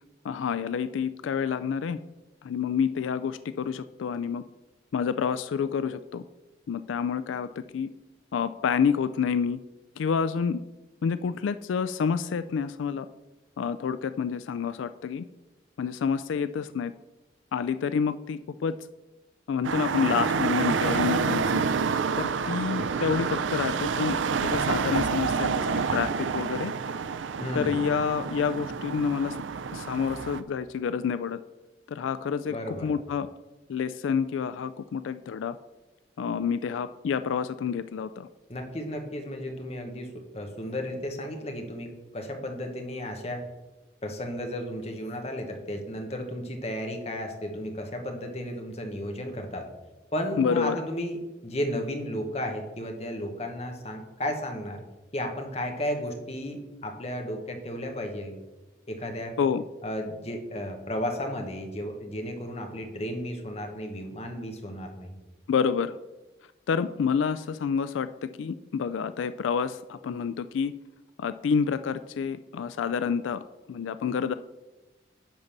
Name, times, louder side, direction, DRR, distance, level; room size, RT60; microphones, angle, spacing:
voice 1, 0.2-2.0 2.4-4.4 4.9-6.2 6.7-7.9 8.3-9.6 10.0-10.6 11.0-13.1 13.6-15.3 15.8-16.9 17.5-18.8 19.5-21.6 22.2-24.2 24.4-26.7 27.5-29.4 29.7-31.4 31.9-33.3 33.7-35.6 36.2-38.3 50.4-50.8 59.4-59.6 65.5-66.0 66.7-70.7 71.2-73.4 73.7-74.3, left 6 dB, 90° left, 13 dB, 0.3 m, -28 dB
sound 1, 19.6-30.4, right 5 dB, 85° right, 0.5 m, -28 dB
voice 2, 27.4-27.8 32.5-32.9 38.5-43.4 44.0-49.7 50.1-51.2 51.4-54.8 55.1-58.4 58.9-59.3 59.8-65.1, equal, 35° left, 4 dB, 1.3 m, -34 dB
10.5 x 4.0 x 7.2 m, 1.1 s
head